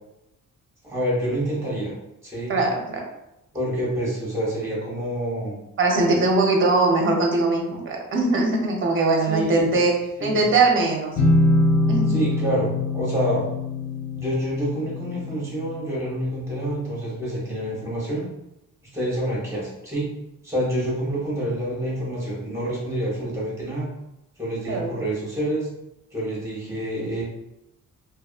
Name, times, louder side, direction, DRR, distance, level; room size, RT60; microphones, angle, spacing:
voice 1, 0.8-1.9 2.2-2.5 3.5-5.6 9.3-9.7 10.2-10.4 12.1-13.4 14.1-18.3 18.9-20.1 20.4-23.9 24.4-25.7 26.1-27.2, right 1 dB, 10° right, -6 dB, 1.0 m, -27 dB
voice 2, 2.5-3.0 5.8-11.1 11.9-12.2 24.6-24.9, right 3 dB, 40° right, 1 dB, 0.6 m, -21 dB
sound 1, 11.2-16.8, left 2 dB, 60° left, 0.5 m, -24 dB
2.5 x 2.5 x 2.4 m, 0.88 s
wide cardioid pair, 155°, 32 cm